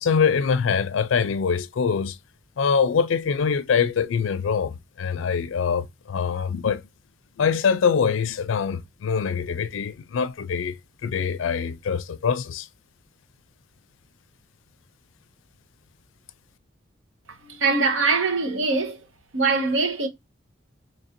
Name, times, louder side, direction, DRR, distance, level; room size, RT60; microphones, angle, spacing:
voice 1, 0.0-2.2 2.6-6.8 7.4-10.8 11.0-12.7, left 6 dB, 80° left, 0.4 m, -24 dB
voice 2, 17.3-19.1 19.3-20.1, right 4 dB, 90° right, 1.0 m, -23 dB
3.2 x 2.5 x 4.2 m
head